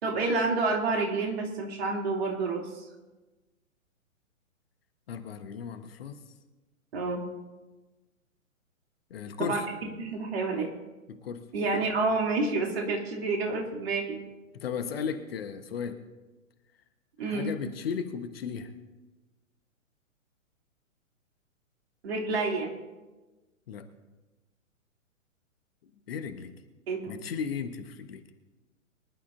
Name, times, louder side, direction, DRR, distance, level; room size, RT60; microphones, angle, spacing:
voice 1, 0.0-2.8 6.9-7.2 9.4-9.6 10.0-10.7 11.5-14.2 17.2-17.5 22.0-22.7 26.9-27.1, right 3 dB, 50° right, 0 dB, 2.9 m, -29 dB
voice 2, 5.1-6.2 9.1-9.7 11.1-11.4 14.5-16.0 17.2-18.7 23.7-23.9 26.1-26.5 27.1-28.2, left 6 dB, 45° left, 8 dB, 1.2 m, -35 dB
24.0 x 11.5 x 2.7 m, 1.2 s
figure-of-eight pair, 120°, 40 cm